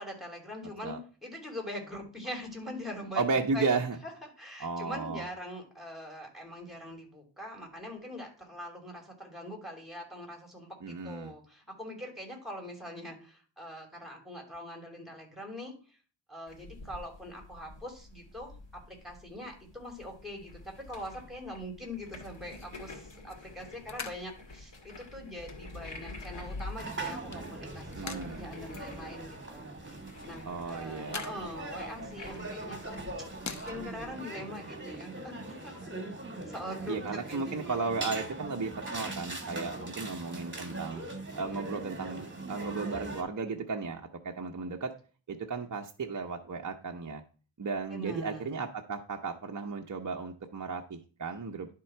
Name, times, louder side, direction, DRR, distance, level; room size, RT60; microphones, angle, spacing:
voice 1, 0.0-3.2 3.5-3.7 4.0-4.1 4.4-15.7 16.3-18.5 18.9-30.0 30.2-33.1 33.6-35.9 36.5-37.0 37.3-37.7 47.9-48.6, left 1 dB, ahead, 2 dB, 2.9 m, -43 dB
voice 2, 3.1-4.0 4.6-5.3 10.8-11.3 27.9-28.4 30.4-31.2 36.9-41.0 41.4-44.9 45.3-47.2 47.6-51.7, right 4 dB, 40° right, 2 dB, 0.8 m, -34 dB
sound 1, 16.5-34.1, left 2 dB, 70° left, 2.0 m, -48 dB
sound 2, 22.2-33.7, left 5 dB, 40° left, 0.8 m, -48 dB
sound 3, 26.8-43.2, right 2 dB, 25° right, 1.7 m, -41 dB
11.5 x 3.8 x 4.4 m, 0.38 s
cardioid pair, 60°, 45 cm